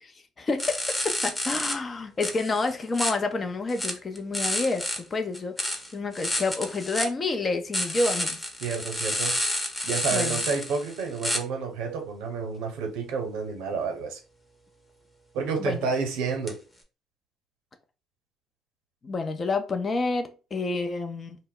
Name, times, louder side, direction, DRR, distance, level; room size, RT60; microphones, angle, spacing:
voice 1, 0.4-0.8 1.0-8.4 10.1-10.4 15.6-15.8 19.0-21.4, left 3 dB, 35° left, 0.5 m, -29 dB
sound 1, 0.6-1.8 2.2-3.1 3.7-5.0 5.3-7.1 7.7-11.4 16.5-16.6, left 1 dB, 15° left, 0.8 m, -29 dB
voice 2, 8.6-9.3 9.8-14.2 15.3-16.6, right 5 dB, 70° right, 0.8 m, -30 dB
2.1 x 2.0 x 3.7 m
hypercardioid pair, 55°, 0 cm